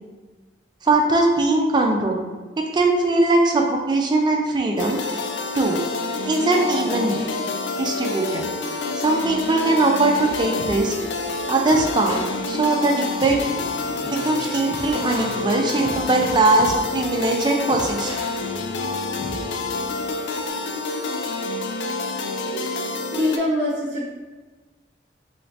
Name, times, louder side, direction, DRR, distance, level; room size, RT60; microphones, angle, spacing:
voice 1, 0.8-2.3 2.6-5.0 5.5-5.8 6.3-7.3 7.8-8.5 8.9-10.9 11.5-13.4 14.1-18.2, right 2 dB, 25° right, 1 dB, 0.4 m, -20 dB
sound 1, 4.8-23.4, left 3 dB, 75° left, 0.3 m, -28 dB
sound 2, 10.2-20.5, equal, 35° left, 0.6 m, -39 dB
voice 2, 23.1-24.0, left 1 dB, 75° right, -4 dB, 0.6 m, -24 dB
3.1 x 3.1 x 2.7 m, 1.3 s
head